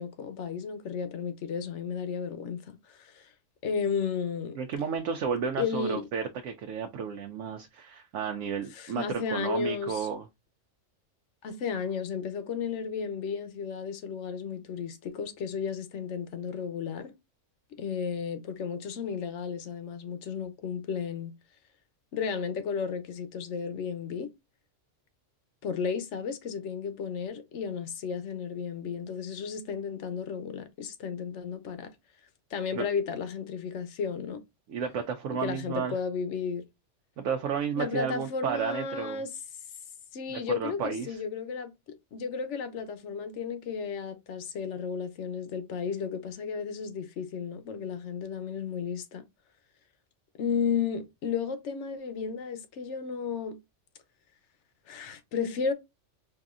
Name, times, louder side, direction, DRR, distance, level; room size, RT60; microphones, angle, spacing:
voice 1, 0.0-3.3 3.6-4.6 5.6-6.1 8.7-10.1 11.4-17.2 17.8-21.3 22.1-24.3 25.6-31.9 32.5-34.4 35.3-36.6 37.7-39.3 40.1-41.7 42.1-49.2 50.4-53.6 54.9-55.7, left 6 dB, 70° left, 1.0 m, -33 dB
voice 2, 4.6-10.3 32.7-32.8 34.7-36.0 37.2-39.2 40.3-41.2, right 6 dB, 90° right, 0.9 m, -32 dB
4.8 x 2.6 x 2.4 m
omnidirectional pair, 1.3 m